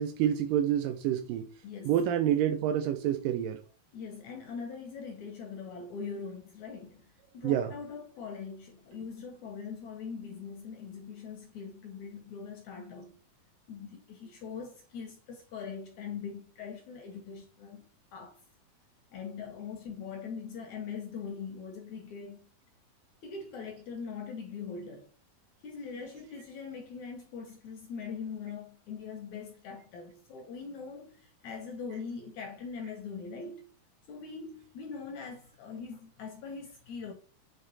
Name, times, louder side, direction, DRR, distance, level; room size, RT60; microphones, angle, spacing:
voice 1, 0.0-1.5 1.8-3.6 7.4-7.7, right 10 dB, 80° right, 2.2 m, -28 dB
voice 2, 1.6-2.0 3.9-13.2 13.7-18.4 19.1-22.5 23.2-25.1 25.6-33.7 34.1-37.1, left 5 dB, 70° left, 1.9 m, -42 dB
8.0 x 3.6 x 4.1 m
omnidirectional pair, 4.2 m